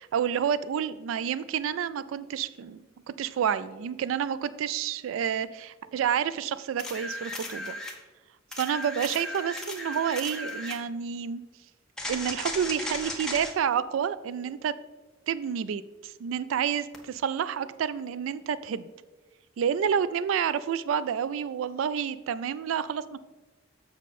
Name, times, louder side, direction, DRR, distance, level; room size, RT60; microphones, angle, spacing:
voice 1, 0.0-2.8 3.2-7.8 8.5-11.4 12.1-14.7 15.3-18.9 19.6-23.2, right 8 dB, 85° right, 16 dB, 0.3 m, -29 dB
sound 1, 6.8-8.0 8.5-10.8 12.0-13.5 16.9-17.0, left 1 dB, 5° left, 1.0 m, -36 dB
7.3 x 6.2 x 4.2 m, 1.2 s
head